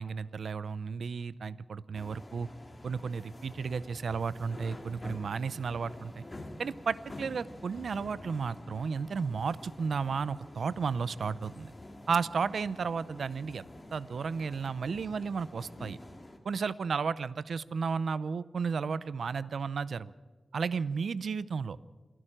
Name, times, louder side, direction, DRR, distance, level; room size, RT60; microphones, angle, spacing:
voice 1, 0.0-2.5 2.8-6.2 6.6-11.7 12.1-13.7 13.9-16.0 16.4-20.1 20.5-21.8, right 5 dB, 90° right, 18 dB, 0.5 m, -33 dB
sound 1, 1.9-16.4, left 1 dB, 25° left, 2.2 m, -48 dB
27.5 x 11.0 x 8.9 m, 1.3 s
wide cardioid pair, 105°, 0 cm